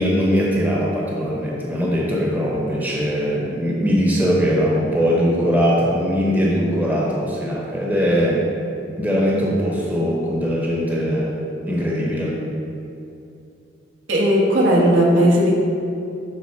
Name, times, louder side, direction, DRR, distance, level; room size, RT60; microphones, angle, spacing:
voice 1, 0.0-8.4 9.0-11.4 11.6-12.4, equal, 10° right, -4 dB, 0.8 m, -20 dB
voice 2, 14.1-15.5, equal, 80° right, -3 dB, 1.4 m, -16 dB
9.2 x 3.6 x 4.3 m, 2.7 s
head